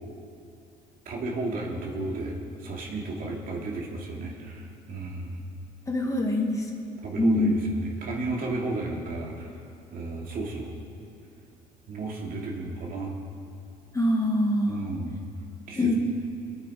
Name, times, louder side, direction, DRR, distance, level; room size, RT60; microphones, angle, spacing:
voice 1, 1.0-5.5 7.0-10.7 11.9-13.1 14.7-15.2 15.7-15.9, right 2 dB, 55° right, -1 dB, 2.7 m, -33 dB
voice 2, 5.9-6.6 7.2-7.6 13.9-14.7 15.8-15.9, left 1 dB, 20° left, 0 dB, 2.0 m, -24 dB
22.5 x 9.1 x 5.0 m, 2.5 s
cardioid pair, 110°, 17 cm